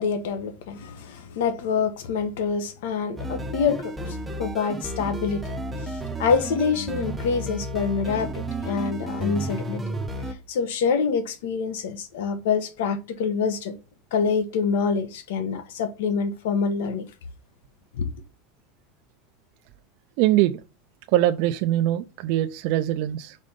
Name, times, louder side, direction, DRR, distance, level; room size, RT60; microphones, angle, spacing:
voice 1, 0.0-5.4 5.8-9.8 10.5-13.8 14.1-17.1 18.0-18.1, left 5 dB, 80° left, 1.1 m, -26 dB
sound 1, 3.2-10.3, right 1 dB, 5° right, 0.7 m, -32 dB
voice 2, 20.2-20.6 21.1-23.4, right 14 dB, 50° right, 0.4 m, -22 dB
5.2 x 4.2 x 5.1 m
supercardioid pair, 175°, 0 cm